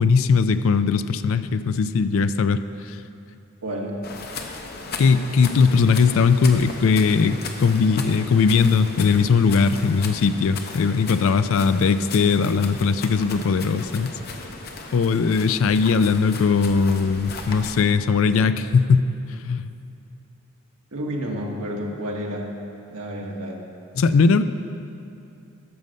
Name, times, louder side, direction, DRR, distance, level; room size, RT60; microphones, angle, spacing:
voice 1, 0.0-2.6 5.0-14.2 14.9-19.7 24.0-24.4, left 5 dB, 65° left, 11 dB, 0.4 m, -19 dB
voice 2, 3.6-3.9 20.9-22.5 22.9-23.6, equal, 90° right, -1 dB, 1.5 m, -30 dB
sound 1, 4.0-17.8, left 4 dB, 45° left, 0.8 m, -36 dB
12.5 x 6.4 x 5.3 m, 2.6 s
head